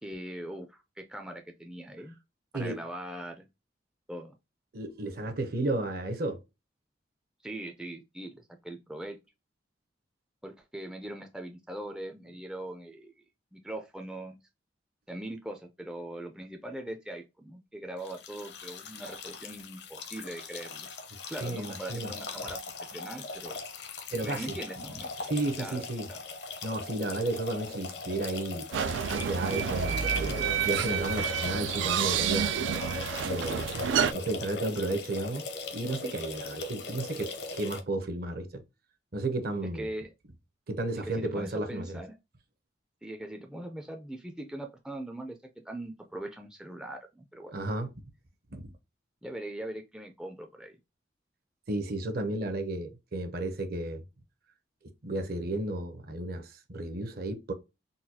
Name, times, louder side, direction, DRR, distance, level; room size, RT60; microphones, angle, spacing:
voice 1, 0.0-2.1 2.5-3.5 4.1-4.3 7.4-9.2 10.4-13.3 13.5-14.4 15.1-20.9 21.3-22.6 22.9-23.6 24.2-25.3 25.6-25.8 39.7-40.1 41.0-42.2 43.0-45.4 45.6-47.5 49.2-50.8, right 1 dB, 5° right, 0.3 m, -41 dB
voice 2, 4.7-6.4 21.1-22.1 24.1-24.6 25.2-26.1 26.6-28.7 29.1-32.5 33.2-38.6 39.1-39.9 40.7-42.0 47.5-47.9 48.5-48.7 51.7-54.0 55.0-57.5, right 2 dB, 55° right, 0.7 m, -33 dB
sound 1, 18.0-37.8, left 4 dB, 60° left, 0.7 m, -40 dB
sound 2, 28.7-34.1, right 8 dB, 80° right, 0.3 m, -29 dB
3.9 x 2.2 x 2.7 m
head